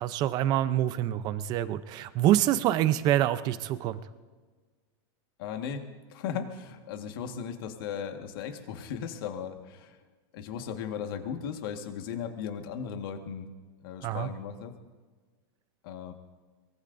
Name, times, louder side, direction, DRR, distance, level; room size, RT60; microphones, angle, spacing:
voice 1, 0.0-4.0 14.0-14.3, right 12 dB, 30° right, 13 dB, 0.6 m, -26 dB
voice 2, 5.4-10.0 10.3-13.5 13.8-14.7 15.8-16.1, left 7 dB, 60° left, 6 dB, 1.6 m, -37 dB
23.5 x 22.0 x 2.6 m, 1.4 s
supercardioid pair, 165°, 14 cm